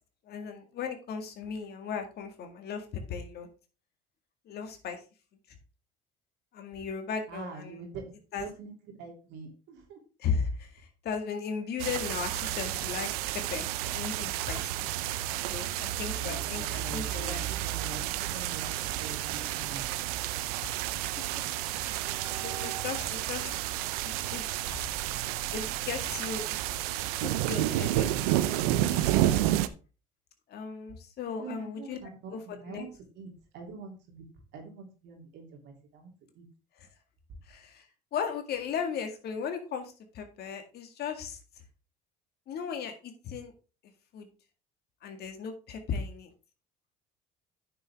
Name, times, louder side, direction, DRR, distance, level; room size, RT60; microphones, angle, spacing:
voice 1, 0.2-3.5 4.5-5.0 6.5-7.9 8.3-8.5 10.2-13.1 13.3-14.9 15.5-17.4 20.6-20.8 21.8-23.5 24.0-24.9 25.5-26.6 27.2-28.3 28.6-29.0 30.5-32.0 32.3-32.9 36.8-36.9 37.5-37.9 38.1-41.4 42.5-43.5 44.1-44.3 45.0-46.3, left 6 dB, 60° left, 6 dB, 2.0 m, -37 dB
voice 2, 7.3-8.0 8.4-8.7 9.0-10.0 16.2-18.7 19.0-20.0 31.4-32.9 33.1-34.2 34.5-36.4, right 4 dB, 70° right, 2 dB, 3.2 m, -44 dB
sound 1, 11.8-29.7, right 14 dB, 85° right, 0.6 m, -31 dB
9.3 x 6.7 x 3.5 m, 0.33 s
supercardioid pair, 70°, 19 cm